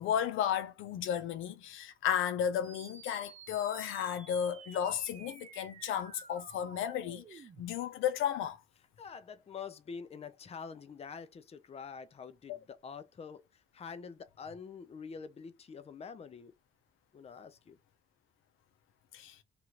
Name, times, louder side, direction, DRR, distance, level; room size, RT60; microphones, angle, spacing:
voice 1, 0.0-8.6 19.1-19.4, left 9 dB, 90° left, 0.6 m, -33 dB
sound 1, 2.6-7.6, right 6 dB, 35° right, 0.7 m, -52 dB
voice 2, 9.0-13.4 13.7-16.5 17.1-17.8, left 6 dB, 30° left, 0.5 m, -46 dB
2.9 x 2.4 x 2.9 m
cardioid pair, 90°, 20 cm